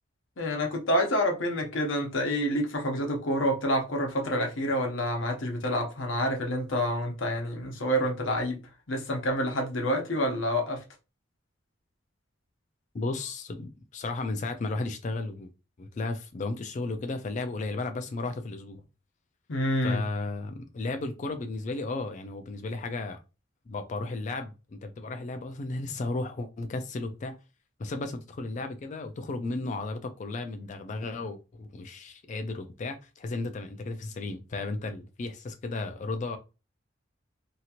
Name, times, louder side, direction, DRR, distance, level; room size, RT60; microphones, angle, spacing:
voice 1, 0.4-8.6 8.9-10.8 19.5-20.0, equal, 80° left, 0.9 m, -28 dB
voice 2, 12.9-15.5 15.8-18.8 19.8-23.2 23.7-27.4 27.8-36.4, left 3 dB, 40° left, 0.3 m, -34 dB
2.8 x 2.4 x 2.8 m
head